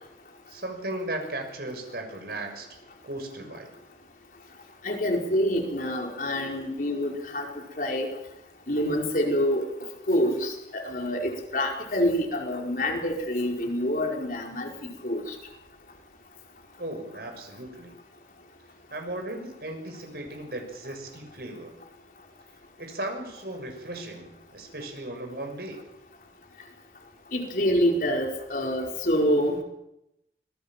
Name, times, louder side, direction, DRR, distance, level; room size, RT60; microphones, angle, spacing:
voice 1, 0.5-2.7 3.0-3.7 16.8-17.9 18.9-21.8 22.8-25.8, right 1 dB, 60° right, 4 dB, 6.6 m, -36 dB
voice 2, 4.8-7.5 7.8-8.1 8.7-9.7 10.1-15.2 27.3-29.6, equal, 50° left, 1 dB, 4.9 m, -26 dB
26.0 x 20.0 x 7.5 m, 0.86 s
head